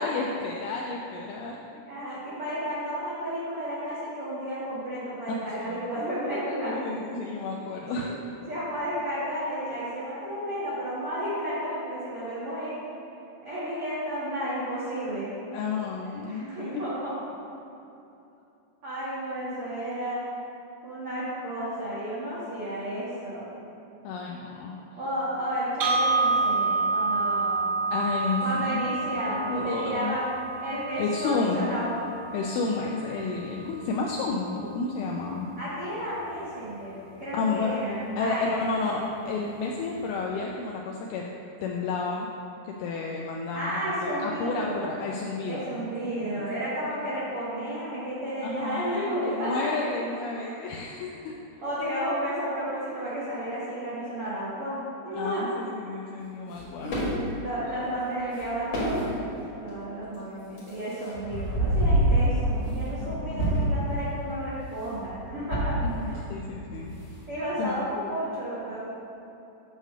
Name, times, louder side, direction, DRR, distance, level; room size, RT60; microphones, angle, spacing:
voice 1, 0.0-1.6 5.6-5.8 6.6-8.1 15.5-16.8 24.0-24.8 27.9-28.9 29.2-30.2 31.0-31.7 32.3-35.5 37.3-37.8 38.2-41.2 41.6-42.3 42.6-45.9 46.4-46.5 48.4-51.4 55.2-57.2 62.9-63.7 65.8-66.9 67.6-67.8, left 4 dB, 85° left, -1 dB, 2.2 m, -31 dB
voice 2, 1.8-6.7 7.9-8.1 8.5-13.0 13.4-15.3 16.3-17.1 18.8-20.2 20.8-23.5 24.9-27.7 28.4-30.3 30.6-31.9 35.6-39.0 43.5-44.9 45.4-49.9 50.3-50.7 51.6-55.5 57.4-59.2 59.6-65.8 66.1-66.2 67.3-68.8, equal, 75° right, -11 dB, 1.3 m, -32 dB
sound 1, 25.8-33.8, right 3 dB, 90° right, 2.0 m, -29 dB
sound 2, 56.5-57.2 58.3-58.5 58.7-59.3 60.0-60.1 60.5-63.1 63.4-63.9 65.0-66.2 66.5-66.9, right 1 dB, 50° left, 2.0 m, -26 dB
9.0 x 3.2 x 6.5 m, 2.8 s
omnidirectional pair, 4.9 m